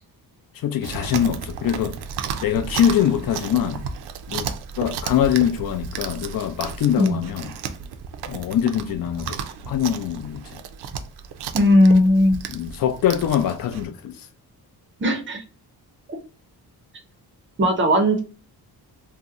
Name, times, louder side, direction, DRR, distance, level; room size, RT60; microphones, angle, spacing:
voice 1, 0.5-2.0 2.4-3.8 4.3-4.5 4.8-7.5 8.3-9.4 9.7-10.6 12.5-14.3, left 9 dB, 60° left, 0.5 m, -23 dB
Chewing mastication, 0.8-13.9, right 7 dB, 80° right, 0.5 m, -33 dB
voice 2, 11.5-12.4 15.0-15.4 17.6-18.2, left 1 dB, 30° right, 0.5 m, -17 dB
2.7 x 2.1 x 3.5 m
wide cardioid pair, 175°, 38 cm